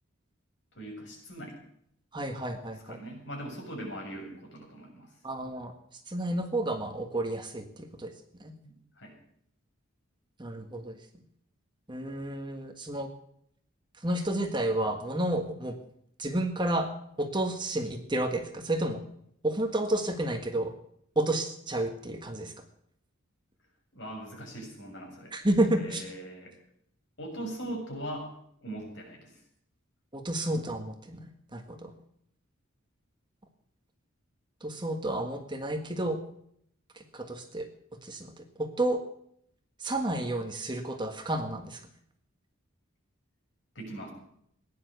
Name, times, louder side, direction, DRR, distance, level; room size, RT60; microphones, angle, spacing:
voice 1, 0.7-1.6 2.8-5.1 8.6-9.1 23.9-25.3 25.8-26.5 27.2-28.3 28.6-29.4 43.8-44.1, right 1 dB, 60° left, 0 dB, 7.2 m, -40 dB
voice 2, 2.1-3.0 5.2-5.7 6.1-8.1 8.4-8.5 10.4-11.0 11.9-13.1 14.0-15.7 16.2-16.9 17.2-19.0 19.4-20.7 21.2-22.5 25.3-26.0 30.1-31.9 34.6-36.2 36.9-37.7 38.0-39.0 39.8-41.8, right 1 dB, 20° right, 5 dB, 1.6 m, -31 dB
17.0 x 10.5 x 8.0 m, 0.70 s
head